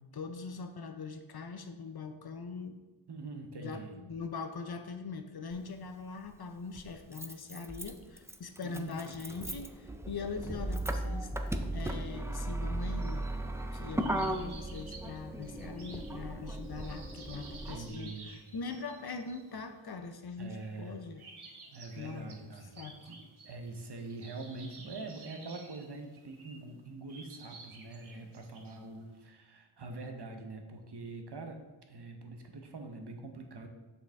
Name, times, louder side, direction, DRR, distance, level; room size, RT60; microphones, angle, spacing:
voice 1, 0.0-2.8 3.6-11.3 11.7-13.3 13.7-21.2 22.0-23.1, left 4 dB, 50° left, 8 dB, 0.6 m, -42 dB
voice 2, 3.1-4.0 8.6-9.1 17.0-17.1 17.7-18.3 20.4-21.0 21.7-22.7 23.1-23.2 23.4-33.7, right 3 dB, 55° right, 4 dB, 0.9 m, -44 dB
Motor vehicle (road), 5.5-5.6 6.8-17.9, right 1 dB, 5° right, 0.3 m, -37 dB
sound 1, 12.8-13.6 14.0-19.6 20.0-20.1 20.5-20.9 21.1-26.7 27.1-29.0, right 4 dB, 85° right, 1.0 m, -53 dB
6.6 x 5.4 x 3.5 m, 1.2 s
wide cardioid pair, 90°, 48 cm